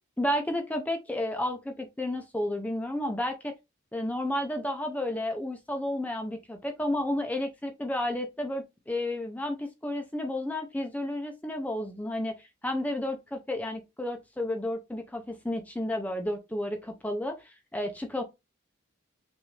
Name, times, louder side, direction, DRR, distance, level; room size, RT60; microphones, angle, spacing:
voice 1, 0.2-3.5 3.9-18.2, left 1 dB, 5° left, 0.6 m, -32 dB
6.1 x 2.6 x 3.2 m
head